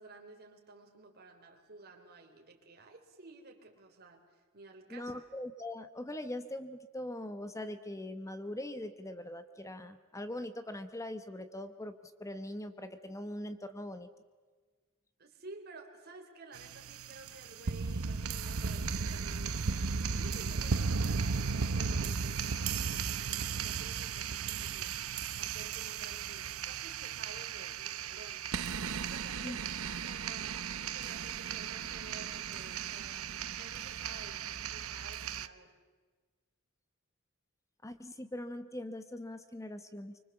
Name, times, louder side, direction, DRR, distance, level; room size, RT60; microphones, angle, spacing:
voice 1, 0.0-5.1 15.2-24.9 25.4-29.7 30.0-34.4 34.7-35.7, right 3 dB, 45° right, 3 dB, 3.4 m, -53 dB
voice 2, 4.9-14.1 29.4-29.6 37.8-40.2, left 1 dB, 15° left, 10 dB, 1.0 m, -41 dB
sound 1, 16.5-35.5, right 5 dB, 70° right, 0.8 m, -36 dB
25.0 x 25.0 x 7.1 m, 1.4 s
head